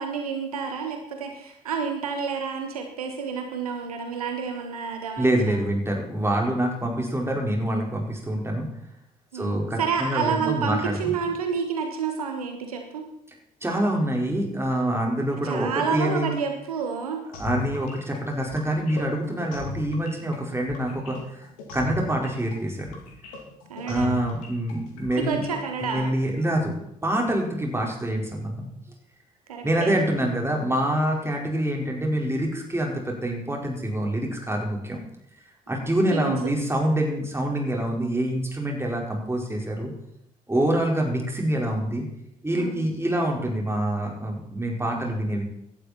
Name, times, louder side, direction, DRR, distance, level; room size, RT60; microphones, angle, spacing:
voice 1, 0.0-5.6 9.3-13.0 15.4-17.2 23.7-24.3 25.1-26.1 29.5-30.0 36.1-36.4 42.6-42.8, right 6 dB, 80° right, 5 dB, 1.2 m, -29 dB
voice 2, 5.2-8.7 9.3-11.1 13.6-16.3 17.4-21.5 21.7-23.0 23.9-25.4 25.8-26.7 27.0-28.7 29.6-35.0 35.7-39.9 40.5-42.0 42.4-45.4, right 1 dB, 15° right, 0 dB, 4.8 m, -26 dB
sound 1, 17.3-26.0, left 3 dB, 70° left, 2.5 m, -38 dB
17.5 x 11.5 x 4.4 m, 0.76 s
figure-of-eight pair, 45°, 19 cm